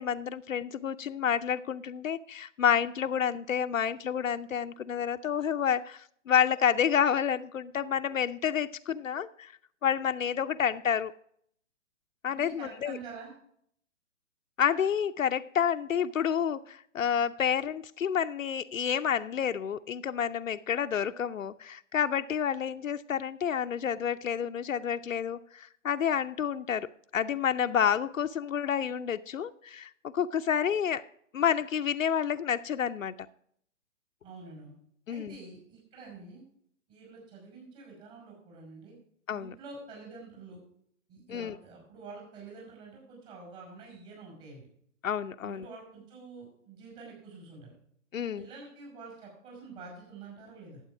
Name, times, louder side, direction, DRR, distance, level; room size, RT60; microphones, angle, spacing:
voice 1, 0.0-9.5 9.8-11.1 12.2-13.0 14.6-26.9 27.1-31.1 31.3-33.1 35.1-35.4 39.3-39.5 41.3-41.6 45.0-45.7 48.1-48.5, left 8 dB, 75° left, 9 dB, 0.6 m, -29 dB
voice 2, 12.3-13.3 34.2-34.7 35.1-36.4 36.9-39.0 39.3-40.6 41.1-44.7 45.4-47.8 48.1-50.8, right 4 dB, 30° right, -1 dB, 5.7 m, -47 dB
12.0 x 8.0 x 4.9 m, 0.66 s
figure-of-eight pair, 125°, 39 cm